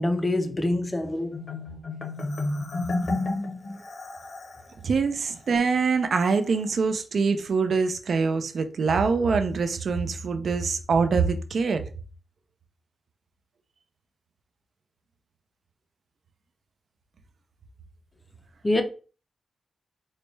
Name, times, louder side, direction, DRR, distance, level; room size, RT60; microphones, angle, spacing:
voice 1, 0.0-1.5 18.6-18.8, left 1 dB, 15° left, 0.4 m, -25 dB
Marimba xylophone, 1.3-4.7, left 2 dB, 55° left, 0.7 m, -31 dB
voice 2, 4.8-11.8, right 5 dB, 60° right, 0.4 m, -24 dB
4.0 x 2.2 x 3.1 m
wide cardioid pair, 145°, 0 cm